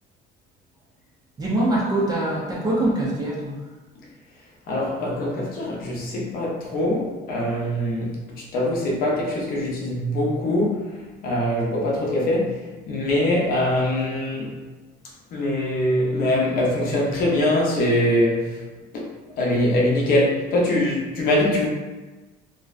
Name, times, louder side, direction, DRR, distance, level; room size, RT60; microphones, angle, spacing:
voice 1, 1.4-3.6, right 1 dB, 20° right, -4 dB, 0.4 m, -23 dB
voice 2, 4.7-8.2 8.5-10.9 11.2-12.6 12.9-14.5 15.3-18.5 18.9-19.1 19.4-21.7, left 1 dB, 55° left, -3 dB, 0.6 m, -23 dB
2.5 x 2.1 x 2.3 m, 1.2 s
cardioid pair, 160°, 18 cm